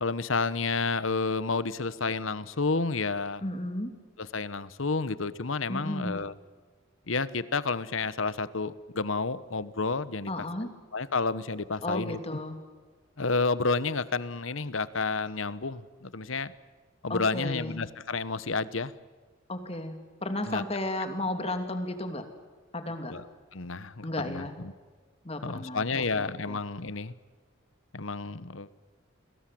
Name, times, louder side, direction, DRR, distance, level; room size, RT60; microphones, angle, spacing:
voice 1, 0.0-3.4 4.2-6.3 7.1-10.3 10.6-12.4 13.2-16.5 17.0-18.9 20.4-20.6 23.1-23.3 23.5-24.7 25.4-27.1 27.9-28.7, left 4 dB, 75° left, 16 dB, 1.2 m, -30 dB
voice 2, 3.4-3.9 5.7-6.3 10.3-10.7 11.8-12.6 17.1-17.8 19.5-22.2 22.7-23.1 24.0-24.5 25.2-26.6, left 1 dB, 30° left, 7 dB, 2.9 m, -34 dB
29.5 x 22.0 x 7.8 m, 1.4 s
head